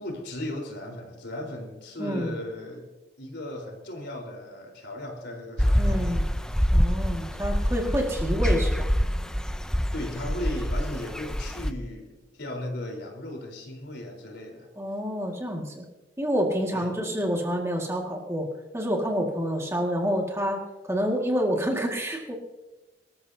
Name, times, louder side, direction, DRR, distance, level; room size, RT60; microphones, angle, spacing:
voice 1, 0.0-2.9 3.2-6.2 9.9-14.7 16.7-17.0, left 1 dB, 70° left, 1 dB, 4.2 m, -36 dB
voice 2, 2.0-2.3 5.8-6.2 6.7-8.9 14.8-15.9 16.2-18.5 18.7-22.4, equal, 15° right, 0 dB, 2.0 m, -28 dB
sound 1, 5.6-11.7, equal, 5° left, 0.5 m, -25 dB
24.5 x 13.5 x 2.8 m, 1.1 s
head